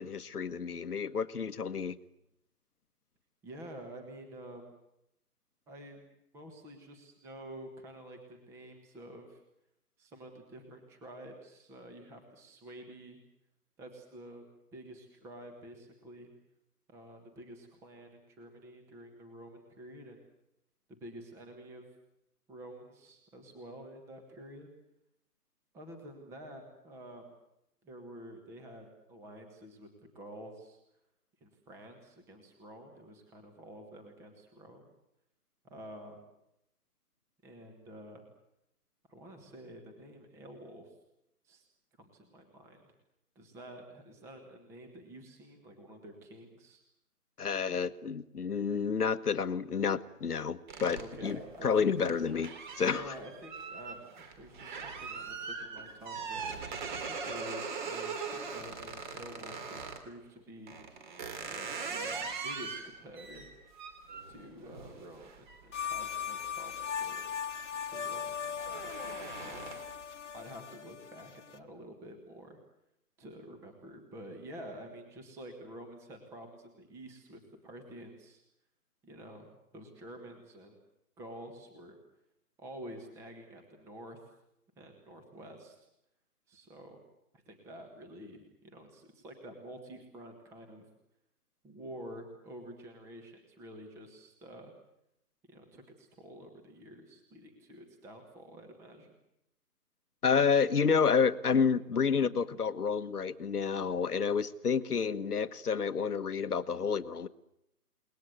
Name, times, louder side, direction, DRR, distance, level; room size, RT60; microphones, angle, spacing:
voice 1, 0.0-2.0 47.4-52.5 52.8-53.1 100.2-107.3, left 6 dB, 75° left, 13 dB, 1.5 m, -29 dB
voice 2, 3.4-4.7 5.7-6.0 6.3-9.4 10.0-13.2 13.8-14.5 14.7-16.3 16.9-20.2 20.9-21.9 22.5-24.7 25.7-27.3 27.8-29.9 30.2-30.8 31.4-34.9 35.6-36.3 37.4-38.2 39.1-40.9 41.4-41.6 42.0-42.8 43.4-46.8 50.9-52.2 52.9-60.8 61.5-63.5 64.3-67.3 67.9-69.7 70.3-72.6 73.2-78.4 79.0-80.8 81.2-82.0 82.6-84.2 84.8-85.8 86.5-87.0 87.5-90.9 91.6-94.7 95.5-99.1, right 1 dB, 5° right, 5 dB, 1.6 m, -49 dB
sound 1, 50.7-60.1 60.7-67.1 67.5-67.9 68.2-70.0, right 5 dB, 30° right, 3.4 m, -41 dB
sound 2, 65.7-71.6, left 8 dB, 50° left, 1.6 m, -39 dB
29.5 x 20.0 x 8.0 m, 0.82 s
hypercardioid pair, 160°, 46 cm